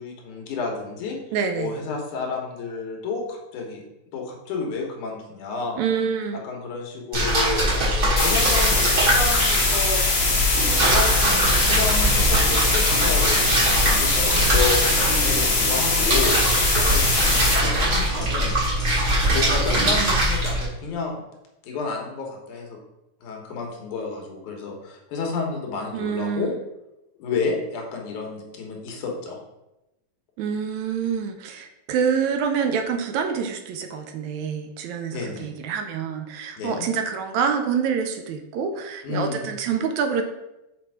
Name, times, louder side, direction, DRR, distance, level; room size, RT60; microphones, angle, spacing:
voice 1, 0.0-1.2 1.6-3.8 4.1-5.8 6.4-10.0 10.6-14.8 15.1-16.4 16.8-18.6 19.3-21.2 21.6-22.8 23.2-26.5 27.2-29.4 35.1-35.5 36.6-36.9 39.0-39.4, left 4 dB, 85° left, 0 dB, 2.7 m, -30 dB
voice 2, 1.3-1.7 5.8-6.4 19.8-20.2 25.9-26.6 30.4-40.2, right 6 dB, 80° right, 6 dB, 2.0 m, -26 dB
sound 1, 7.1-20.7, right 1 dB, 35° right, 2.1 m, -23 dB
sound 2, 8.2-17.6, left 3 dB, 55° left, 2.7 m, -22 dB
sound 3, 10.6-20.0, right 1 dB, ahead, 1.4 m, -29 dB
7.6 x 4.3 x 4.7 m, 0.93 s
omnidirectional pair, 3.4 m